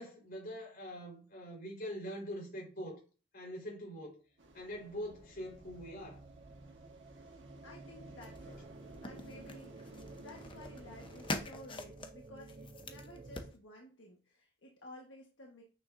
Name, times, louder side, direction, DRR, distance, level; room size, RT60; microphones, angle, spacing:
voice 1, 0.0-3.0 3.3-4.2 4.5-6.2, equal, 55° left, 4.3 m, -43 dB
sound 1, 4.4-13.5, right 2 dB, 35° right, 0.5 m, -53 dB
sound 2, 4.4-11.4, right 1 dB, 80° right, 1.5 m, -56 dB
voice 2, 7.6-8.6 9.0-9.8 10.2-15.6, left 1 dB, 90° left, 1.4 m, -54 dB
sound 3, 8.2-13.5, left 2 dB, 30° left, 0.9 m, -45 dB
8.7 x 6.5 x 2.7 m
head